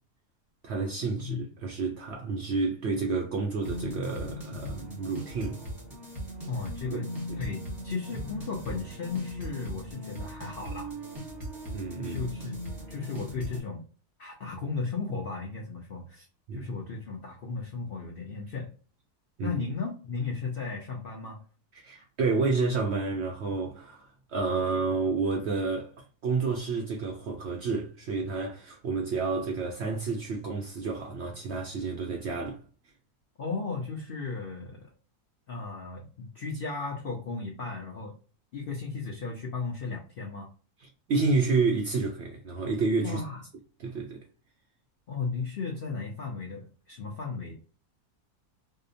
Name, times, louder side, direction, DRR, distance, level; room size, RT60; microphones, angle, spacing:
voice 1, 0.6-5.6 6.9-7.0 7.3-7.4 11.7-12.2 16.5-16.7 19.4-19.5 21.8-25.9 26.2-32.6 41.1-43.2 43.8-44.2, right 4 dB, 80° right, 0.5 m, -30 dB
sound 1, 3.6-13.6, equal, 20° right, 0.7 m, -39 dB
voice 2, 6.5-7.1 7.4-10.9 12.0-12.6 12.9-13.8 14.2-16.3 16.5-18.7 19.4-21.4 33.4-34.9 35.5-38.1 38.5-40.5 43.0-43.4 45.1-47.5, left 4 dB, 65° left, 0.5 m, -35 dB
2.7 x 2.1 x 2.5 m
omnidirectional pair, 1.7 m